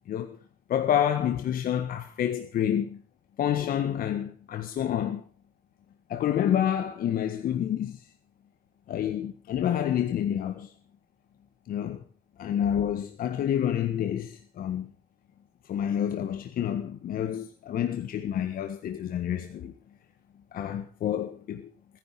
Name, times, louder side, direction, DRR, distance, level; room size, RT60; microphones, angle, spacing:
voice 1, 0.7-3.0 3.4-5.2 6.1-8.0 8.9-10.7 11.7-12.0 12.4-14.9 15.7-19.7 20.5-21.7, left 10 dB, 60° left, 1.7 m, -28 dB
18.5 x 11.0 x 6.1 m
cardioid pair, 110°, 17 cm